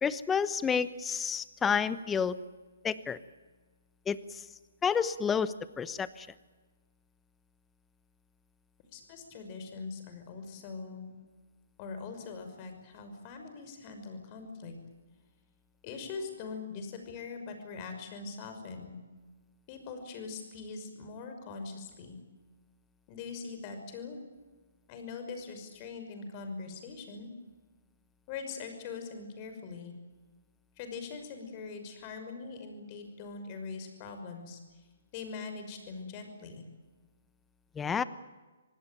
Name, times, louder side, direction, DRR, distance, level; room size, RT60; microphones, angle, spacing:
voice 1, 0.0-2.4 2.8-3.2 4.1-4.4 4.8-6.3 37.8-38.0, left 6 dB, 10° left, 15 dB, 1.0 m, -30 dB
voice 2, 8.9-11.1 11.8-14.7 15.8-19.0 19.7-22.2 23.1-24.2 24.9-27.3 28.3-29.9 30.8-34.6 35.1-36.6, left 4 dB, 30° left, 6 dB, 5.8 m, -42 dB
26.5 x 19.0 x 9.2 m, 1.3 s
hypercardioid pair, 145°, 0 cm